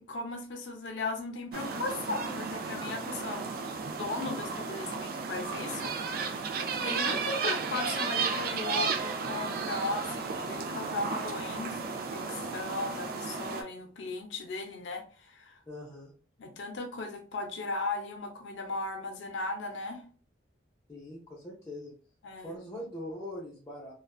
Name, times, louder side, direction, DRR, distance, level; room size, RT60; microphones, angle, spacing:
voice 1, 0.1-3.7 4.0-6.3 6.8-15.6 16.4-20.0 22.2-22.6, left 3 dB, 85° left, 3 dB, 0.5 m, -37 dB
sound 1, 1.5-13.6, right 5 dB, 55° right, 0.4 m, -34 dB
voice 2, 15.7-16.1 20.9-21.9 22.4-23.9, left 1 dB, 20° left, -7 dB, 0.6 m, -42 dB
2.5 x 2.2 x 2.3 m, 0.40 s
head